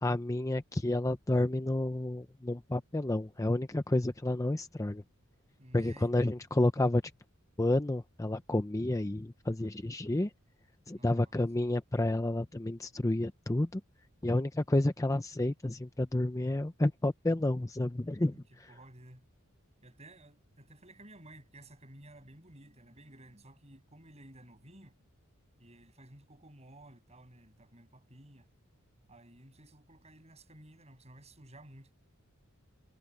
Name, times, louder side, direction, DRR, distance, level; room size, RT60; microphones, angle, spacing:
voice 1, 0.0-5.0 5.7-7.0 7.6-10.3 10.9-13.8 14.2-18.7, left 1 dB, 15° left, 0.6 m, -30 dB
voice 2, 5.6-6.3 10.9-11.3 18.2-18.4 18.7-19.3 19.8-25.0 25.6-28.5 29.1-31.9, right 1 dB, 30° right, 7.4 m, -55 dB
head